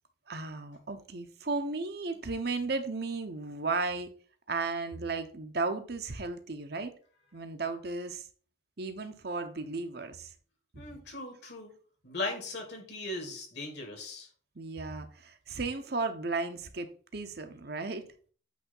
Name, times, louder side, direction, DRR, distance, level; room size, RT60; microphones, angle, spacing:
voice 1, 0.3-4.1 4.5-6.9 7.3-8.2 8.8-10.3 10.7-11.0 14.6-18.0, right 3 dB, 55° right, 0.9 m, -35 dB
voice 2, 10.7-11.7 12.0-14.3, left 2 dB, 60° left, 2.5 m, -38 dB
8.5 x 3.4 x 5.5 m
head